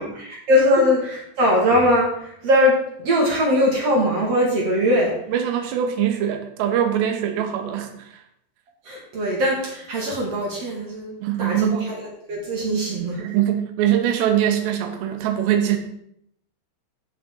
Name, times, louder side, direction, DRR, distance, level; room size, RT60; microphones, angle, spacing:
voice 1, 0.0-5.1 8.9-11.1 11.4-12.0 12.3-13.2, left 1 dB, 55° right, -2 dB, 1.7 m, -21 dB
voice 2, 5.3-8.1 11.2-12.0 13.2-15.8, right 10 dB, 75° right, 5 dB, 2.9 m, -22 dB
14.5 x 5.9 x 3.8 m, 0.73 s
omnidirectional pair, 5.6 m